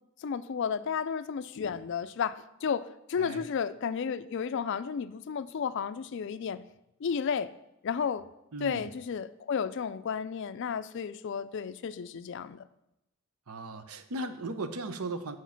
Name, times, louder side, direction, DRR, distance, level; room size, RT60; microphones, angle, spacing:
voice 1, 0.2-6.6 7.0-7.5 7.8-8.3 8.6-12.6, left 6 dB, 55° left, 0.3 m, -32 dB
voice 2, 8.5-8.9 13.5-15.4, right 2 dB, 85° right, 0.8 m, -37 dB
7.2 x 6.3 x 5.7 m
head